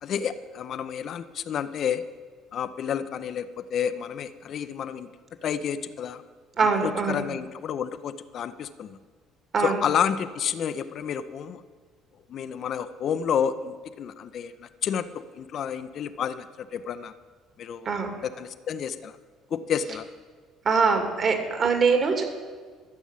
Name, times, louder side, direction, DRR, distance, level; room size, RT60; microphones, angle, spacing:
voice 1, 0.0-2.0 2.5-5.1 5.4-6.2 6.8-9.0 9.6-11.6 12.3-17.1 17.6-17.9 18.2-19.1 19.5-20.1, left 8 dB, 50° left, 12 dB, 0.6 m, -30 dB
voice 2, 6.6-7.3 9.5-9.8 17.9-18.1 20.6-22.2, right 5 dB, 40° right, 5 dB, 2.2 m, -23 dB
13.0 x 7.1 x 8.5 m, 1.5 s
figure-of-eight pair, 50°, 0 cm